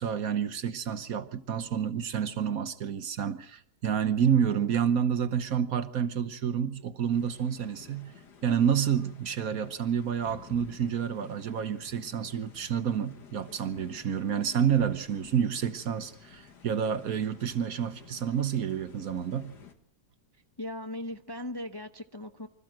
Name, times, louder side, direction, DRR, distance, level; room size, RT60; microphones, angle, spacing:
voice 1, 0.0-8.1 8.4-19.5, right 8 dB, 60° right, 11 dB, 1.4 m, -29 dB
sound 1, 7.1-19.7, left 6 dB, 80° left, 2.2 m, -52 dB
voice 2, 20.6-22.5, left 1 dB, 20° left, 5 dB, 0.7 m, -38 dB
25.0 x 14.5 x 7.6 m, 0.72 s
omnidirectional pair, 1.8 m